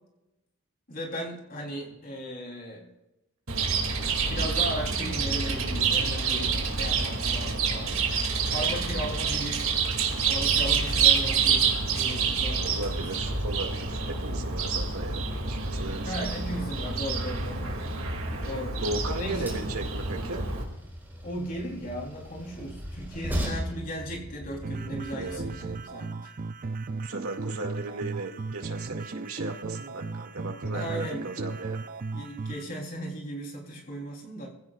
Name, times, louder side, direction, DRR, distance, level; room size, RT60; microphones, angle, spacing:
voice 1, 0.9-2.9 4.2-8.0 8.5-9.7 10.3-13.0 16.0-17.9 18.4-18.8 19.1-19.6 21.2-26.3 30.7-31.3 32.1-34.5, equal, 40° left, -1 dB, 3.6 m, -36 dB
Chirp tweet, 3.5-20.6, right 5 dB, 65° right, 2.5 m, -27 dB
voice 2, 12.6-16.1 18.8-20.4 25.1-25.4 27.0-31.8 33.9-34.0, right 2 dB, 90° right, 3 dB, 2.2 m, -36 dB
Train, 18.0-25.8, equal, 10° right, 4.1 m, -38 dB
sound 1, 24.6-32.6, right 3 dB, 40° right, 0.5 m, -36 dB
23.5 x 16.0 x 2.5 m, 0.97 s
head